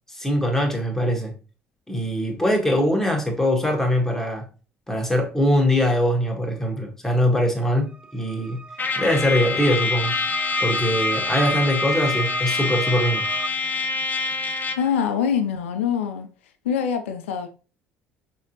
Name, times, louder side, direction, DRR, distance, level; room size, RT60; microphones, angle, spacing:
voice 1, 0.2-1.3 1.9-4.4 4.9-8.6 9.0-10.1 10.6-13.3, equal, 5° left, 1.5 m, -22 dB
sound 1, 7.8-13.5, right 4 dB, 15° right, 0.4 m, -33 dB
Trumpet, 8.8-14.9, left 4 dB, 25° left, 0.7 m, -26 dB
voice 2, 14.8-16.3 16.6-17.5, left 7 dB, 75° left, 0.5 m, -24 dB
5.6 x 2.9 x 2.9 m
hypercardioid pair, 60°, 7 cm